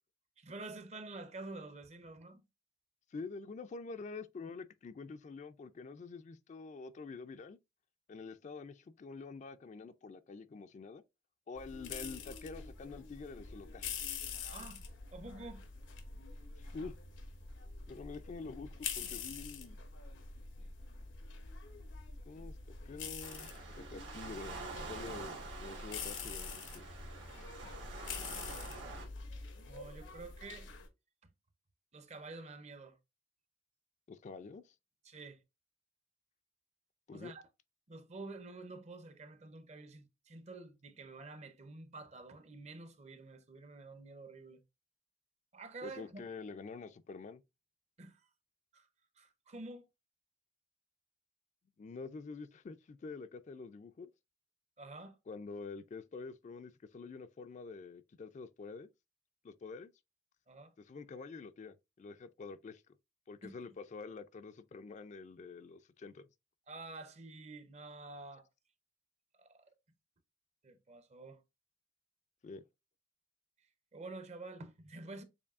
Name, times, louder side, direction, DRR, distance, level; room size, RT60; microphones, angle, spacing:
voice 1, 0.4-2.4 14.5-14.8 15.1-15.6 29.7-30.7 31.9-33.0 35.0-35.4 37.1-37.4 37.9-44.6 45.5-46.2 48.0-48.2 48.7-48.9 49.2-49.9 54.8-55.2 60.5-60.7 63.4-63.5 66.7-68.5 69.3-69.7 70.6-71.4 73.9-75.2, right 3 dB, 35° right, 0.6 m, -49 dB
voice 2, 3.1-7.6 8.1-11.0 11.5-14.0 16.6-16.9 17.9-19.8 22.3-23.5 23.8-24.6 24.9-26.9 34.1-34.7 37.1-37.3 45.8-47.4 51.8-54.1 55.3-58.9 59.4-59.9 60.9-62.8 63.3-66.2 72.4-72.6, left 4 dB, 40° left, 0.3 m, -47 dB
sound 1, 11.5-30.9, left 5 dB, 90° left, 0.9 m, -46 dB
Waves surf, 23.2-29.1, right 3 dB, 80° right, 1.4 m, -47 dB
7.0 x 2.6 x 2.4 m
head